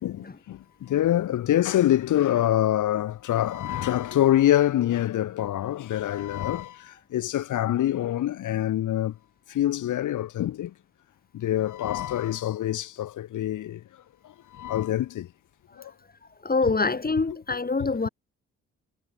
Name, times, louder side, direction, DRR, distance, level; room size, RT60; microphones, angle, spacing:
voice 1, 0.0-9.1 9.5-10.7 11.3-13.8 14.2-15.3 15.8-15.9 17.8-17.9, left 12 dB, 75° left, 4.7 m, -25 dB
voice 2, 16.4-18.1, left 3 dB, 30° left, 5.3 m, -25 dB
supercardioid pair, 50°, 30 cm